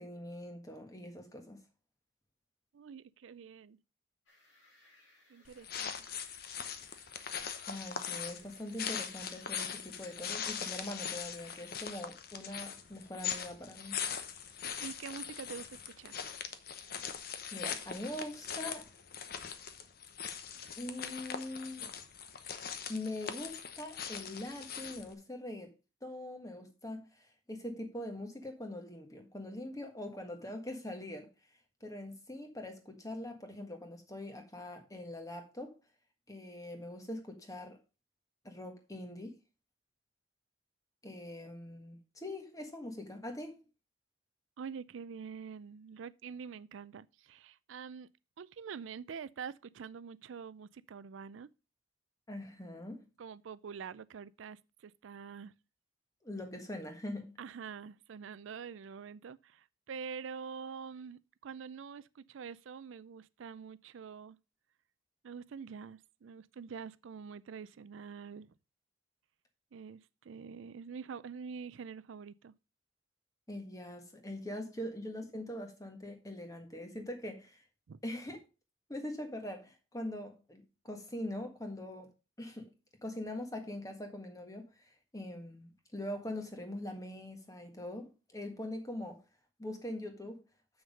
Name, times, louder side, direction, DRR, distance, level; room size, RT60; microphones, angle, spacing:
voice 1, 0.0-1.6 7.7-14.0 17.0-18.9 20.8-21.9 22.9-25.7 26.0-31.3 31.8-35.8 36.3-37.8 38.4-39.4 41.0-43.6 52.3-53.1 56.2-57.4 73.5-77.6 78.0-78.4 78.9-82.1 82.4-82.7 83.0-89.2 89.6-90.4, left 1 dB, 15° left, 1.5 m, -43 dB
voice 2, 2.7-3.8 5.3-6.1 14.8-16.2 44.6-48.1 48.4-51.5 53.2-55.5 57.4-64.4 65.2-68.5 69.7-72.5 74.8-74.9 77.9-78.0, right 6 dB, 85° right, 0.4 m, -46 dB
sound 1, 4.2-11.7, left 2 dB, 80° left, 4.6 m, -66 dB
sound 2, 5.5-25.1, left 7 dB, 50° left, 0.9 m, -41 dB
7.3 x 6.3 x 5.1 m
head